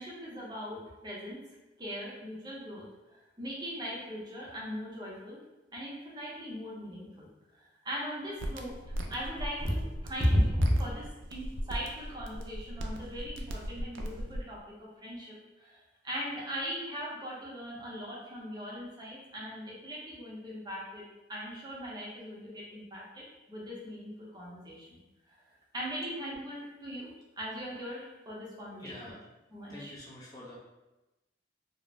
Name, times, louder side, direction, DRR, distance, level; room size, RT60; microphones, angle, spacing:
voice 1, 0.0-1.4 1.8-2.8 3.1-5.4 5.7-7.3 7.5-8.7 9.1-21.0 21.3-25.0 25.7-27.1 27.4-29.1 29.5-29.9, equal, 20° right, -5 dB, 0.6 m, -37 dB
sound 1, 8.4-14.4, equal, 75° right, 0.4 m, -38 dB
voice 2, 28.8-29.2 29.7-30.6, left 1 dB, 20° left, -6 dB, 0.5 m, -47 dB
2.4 x 2.0 x 3.1 m, 1.0 s
head